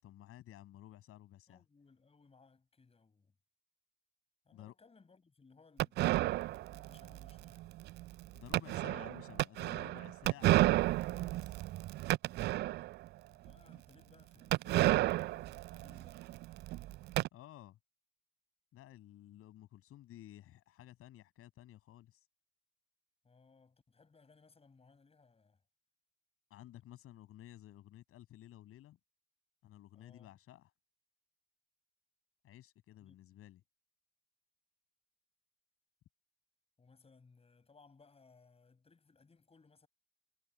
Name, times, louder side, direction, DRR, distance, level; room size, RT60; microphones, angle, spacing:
voice 1, 0.0-1.6 4.5-4.8 8.3-11.6 17.3-17.8 18.7-22.2 26.5-29.0 29.6-30.7 32.4-33.6, left 13 dB, 45° left, 7.5 m, -54 dB
voice 2, 1.5-3.3 4.4-7.9 13.3-16.2 23.2-25.6 29.9-30.3 33.0-33.2 36.8-39.9, left 4 dB, 20° left, 6.9 m, -64 dB
sound 1, 5.8-13.1 13.5-13.6 13.7-13.8 14.5-17.3, right 17 dB, 35° right, 0.4 m, -32 dB
figure-of-eight pair, 65°, 30 cm